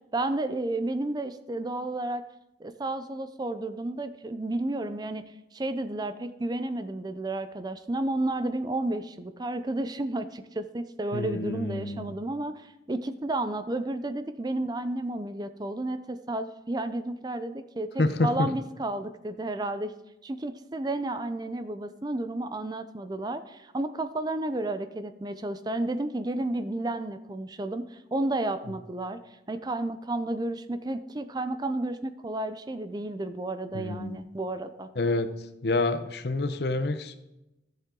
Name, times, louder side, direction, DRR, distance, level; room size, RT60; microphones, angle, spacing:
voice 1, 0.1-2.2 2.6-5.2 5.5-19.9 20.2-29.2 29.5-34.9, right 2 dB, 20° right, 10 dB, 0.4 m, -32 dB
voice 2, 11.1-12.1 18.0-18.5 33.7-34.2 35.0-35.3 35.6-37.2, left 2 dB, 60° left, 10 dB, 0.8 m, -27 dB
13.5 x 7.4 x 3.8 m, 0.94 s
head